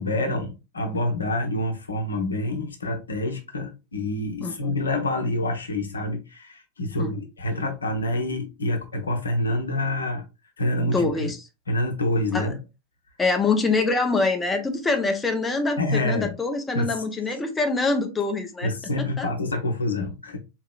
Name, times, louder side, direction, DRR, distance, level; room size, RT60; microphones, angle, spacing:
voice 1, 0.0-10.2 10.6-11.3 11.7-12.6 15.8-16.3 16.7-17.0 18.6-20.4, left 1 dB, 75° left, 0.7 m, -27 dB
voice 2, 4.4-4.7 7.0-7.1 10.9-11.4 12.3-12.5 13.2-18.7 19.2-19.3, left 3 dB, 15° left, 0.6 m, -24 dB
4.0 x 2.9 x 2.3 m
figure-of-eight pair, 90°, 0 cm